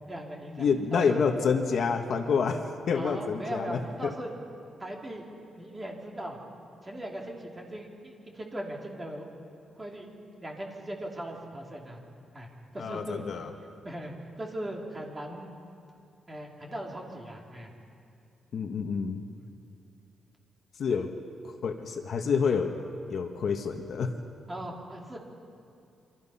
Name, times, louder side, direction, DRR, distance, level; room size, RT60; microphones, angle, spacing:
voice 1, 0.1-0.6 0.9-1.2 2.9-4.3 4.8-5.2 5.5-6.4 6.8-9.3 9.7-12.0 12.3-12.5 12.7-13.2 13.8-15.5 16.3-17.7 19.4-19.5 24.5-25.2, right 1 dB, 15° right, 0 dB, 3.0 m, -39 dB
voice 2, 0.6-4.1 12.8-13.5 18.5-19.2 20.8-21.1 21.4-22.7 23.1-24.1, left 5 dB, 50° left, 4 dB, 1.5 m, -28 dB
28.0 x 25.0 x 5.7 m, 2.6 s
wide cardioid pair, 165°, 0 cm